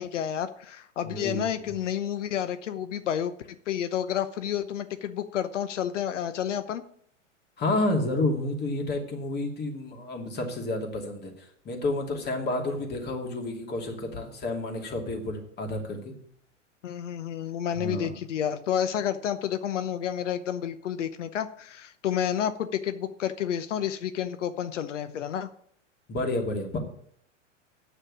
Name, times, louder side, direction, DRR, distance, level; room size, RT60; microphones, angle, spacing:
voice 1, 0.0-3.3 3.7-6.8 16.8-25.5, left 9 dB, 70° left, 12 dB, 0.9 m, -30 dB
voice 2, 1.0-1.4 7.6-11.3 11.6-16.1 17.8-18.1 26.1-26.8, left 2 dB, 25° left, 2 dB, 2.8 m, -30 dB
9.0 x 6.7 x 8.5 m, 0.64 s
hypercardioid pair, 100°, 38 cm